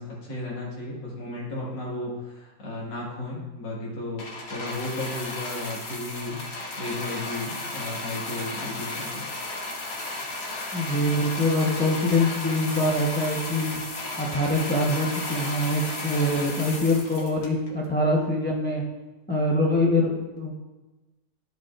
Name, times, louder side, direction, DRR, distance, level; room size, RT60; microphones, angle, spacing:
voice 1, 0.0-9.2, left 2 dB, 70° left, -6 dB, 2.5 m, -34 dB
sound 1, 4.2-17.9 18.6-18.7, left 2 dB, 90° left, 2.1 m, -34 dB
voice 2, 10.7-13.8 14.2-18.8 19.3-20.5, left 1 dB, 10° left, -3 dB, 0.5 m, -24 dB
14.0 x 4.9 x 2.5 m, 1.1 s
omnidirectional pair, 2.0 m